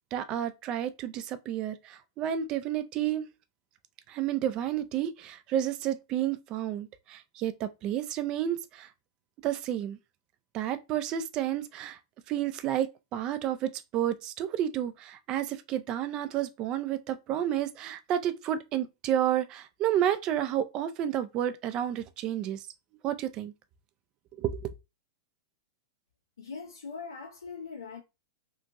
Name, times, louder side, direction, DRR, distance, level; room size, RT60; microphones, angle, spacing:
voice 1, 0.1-3.3 4.1-8.9 9.4-10.0 10.5-12.0 12.3-22.6 23.0-23.5 24.4-24.6, right 11 dB, 35° right, 0.3 m, -31 dB
voice 2, 26.4-28.0, left 5 dB, 75° left, 0.4 m, -41 dB
2.9 x 2.5 x 2.5 m
figure-of-eight pair, 100°, 2 cm